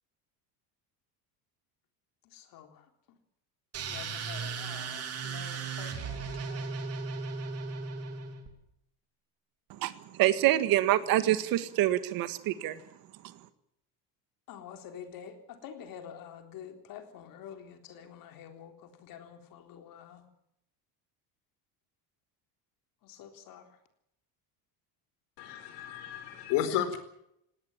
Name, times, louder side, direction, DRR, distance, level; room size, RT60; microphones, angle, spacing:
voice 1, 2.3-2.9 3.8-6.7 14.5-20.3 23.0-23.7, left 8 dB, 55° left, 6 dB, 3.8 m, -48 dB
sound 1, 3.7-8.5, right 4 dB, 35° right, 3.6 m, -36 dB
voice 2, 9.7-12.8, right 14 dB, 55° right, 12 dB, 1.8 m, -26 dB
voice 3, 25.4-27.0, left 10 dB, 75° left, 10 dB, 4.6 m, -32 dB
19.5 x 18.0 x 8.8 m, 0.77 s
cardioid pair, 160°, 41 cm